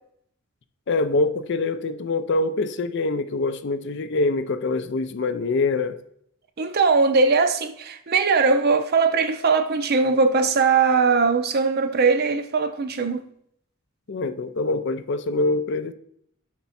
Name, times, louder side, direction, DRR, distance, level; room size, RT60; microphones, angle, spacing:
voice 1, 0.9-6.0 14.1-15.9, left 3 dB, 55° left, 0.5 m, -24 dB
voice 2, 6.6-13.2, right 4 dB, 50° right, 0.5 m, -20 dB
5.9 x 4.4 x 4.1 m
head